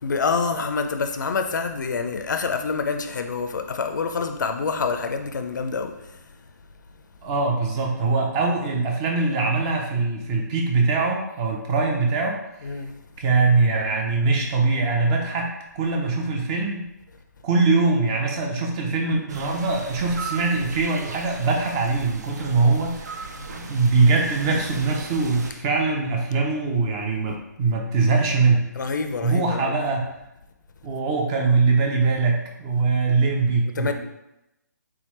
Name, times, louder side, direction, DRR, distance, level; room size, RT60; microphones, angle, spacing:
voice 1, 0.0-6.4 12.6-13.0 23.4-23.7 28.8-30.0 33.8-33.9, left 4 dB, 80° left, 0.4 m, -27 dB
voice 2, 7.2-12.4 13.2-16.9 17.4-28.7 29.2-30.0 30.8-33.9, right 3 dB, 20° right, 0.5 m, -22 dB
sound 1, 19.3-25.5, right 4 dB, 65° right, 0.6 m, -37 dB
3.5 x 3.3 x 3.1 m
hypercardioid pair, 160°, 10 cm